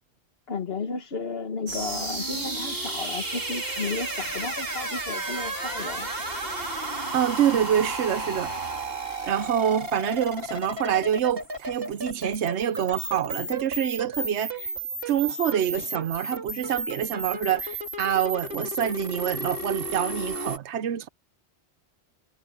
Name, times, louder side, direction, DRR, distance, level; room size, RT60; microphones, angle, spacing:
voice 1, 0.5-6.1, left 4 dB, 65° left, 1.6 m, -33 dB
sound 1, 1.7-20.6, right 2 dB, 60° right, 3.6 m, -33 dB
voice 2, 7.1-8.5 9.2-14.7 15.1-21.1, right 10 dB, 85° right, 1.0 m, -26 dB
omnidirectional pair, 1.1 m